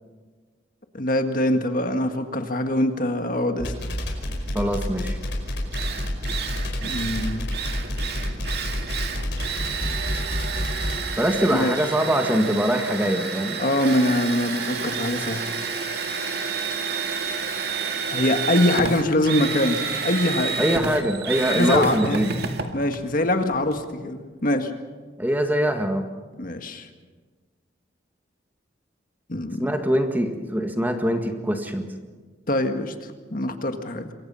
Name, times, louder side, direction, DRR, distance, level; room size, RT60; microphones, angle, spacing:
voice 1, 0.9-3.7 6.8-7.5 11.5-11.8 13.6-15.4 18.1-20.6 21.5-22.2 22.7-24.7 26.4-26.9 29.3-29.7 32.5-34.1, left 1 dB, 45° left, 6 dB, 1.8 m, -23 dB
sound 1, 3.6-11.0, left 1 dB, 60° left, 4.9 m, -28 dB
voice 2, 4.6-5.2 11.2-13.6 20.6-22.4 25.2-26.1 29.6-31.9, equal, 10° right, 5 dB, 1.7 m, -23 dB
Drill, 5.3-5.4 5.7-23.8, right 5 dB, 55° right, 2.2 m, -30 dB
27.5 x 23.5 x 5.7 m, 1.4 s
head